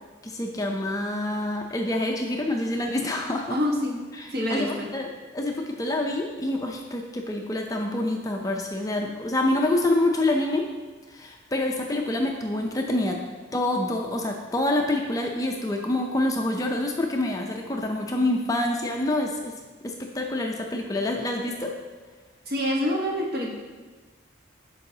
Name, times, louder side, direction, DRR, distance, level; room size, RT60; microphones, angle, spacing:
voice 1, 0.2-3.6 4.2-10.7 11.1-13.2 13.5-19.5 19.8-21.7, left 1 dB, 15° left, 2 dB, 0.4 m, -27 dB
voice 2, 3.5-4.0 4.3-4.9 22.5-23.5, left 1 dB, 50° right, -2 dB, 1.2 m, -26 dB
12.0 x 4.7 x 2.7 m, 1.3 s
head